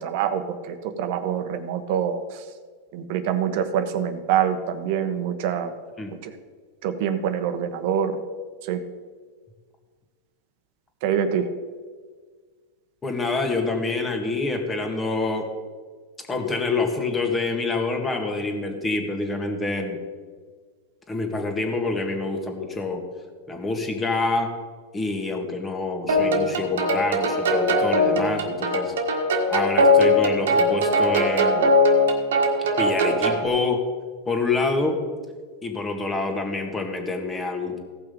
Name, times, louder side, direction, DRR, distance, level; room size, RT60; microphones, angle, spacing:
voice 1, 0.0-2.4 2.9-5.7 6.2-6.3 6.8-8.2 8.6-8.8 11.0-11.5, right 8 dB, 60° right, 9 dB, 1.1 m, -25 dB
voice 2, 13.0-15.5 16.3-20.0 21.1-23.0 23.5-24.6 24.9-28.9 29.5-31.6 32.8-33.8 34.3-35.0 35.6-37.8, left 3 dB, 15° left, 3 dB, 1.8 m, -26 dB
sound 1, 26.1-33.5, left 1 dB, 85° right, 1.7 m, -20 dB
16.0 x 6.0 x 5.3 m, 1.5 s
supercardioid pair, 135°, 0 cm